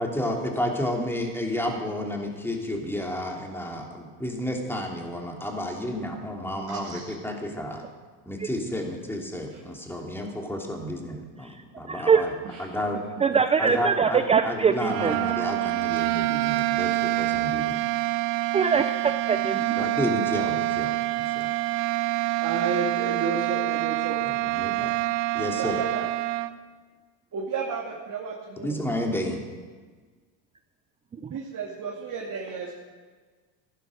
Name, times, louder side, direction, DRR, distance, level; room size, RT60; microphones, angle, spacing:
voice 1, 0.0-7.8 8.3-12.3 12.6-13.0 13.6-17.8 19.8-21.5 24.2-24.9 25.3-25.8 28.6-29.4, left 1 dB, 5° left, 0 dB, 2.9 m, -31 dB
voice 2, 6.7-7.1 9.5-9.6 12.4-12.6 13.1-13.2 15.4-15.5 22.4-24.2 25.6-26.1 27.3-28.8 31.2-32.7, right 4 dB, 35° right, -2 dB, 2.4 m, -32 dB
voice 3, 11.9-12.2 13.2-15.2 18.5-19.8, right 6 dB, 15° right, 10 dB, 0.3 m, -22 dB
sound 1, 14.7-26.5, right 18 dB, 80° right, 0.8 m, -26 dB
15.0 x 11.5 x 6.4 m, 1.4 s
supercardioid pair, 105°, 50 cm